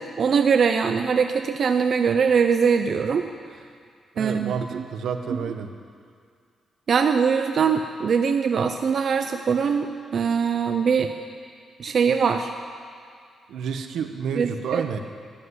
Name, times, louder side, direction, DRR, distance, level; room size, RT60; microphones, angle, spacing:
voice 1, 0.0-3.2 4.2-4.8 6.9-11.1 11.8-12.5 14.4-15.0, right 6 dB, 55° right, 6 dB, 0.7 m, -22 dB
voice 2, 4.1-5.7 13.5-15.0, right 6 dB, 85° right, 7 dB, 1.1 m, -30 dB
13.5 x 10.0 x 9.7 m, 2.2 s
cardioid pair, 115°, 0 cm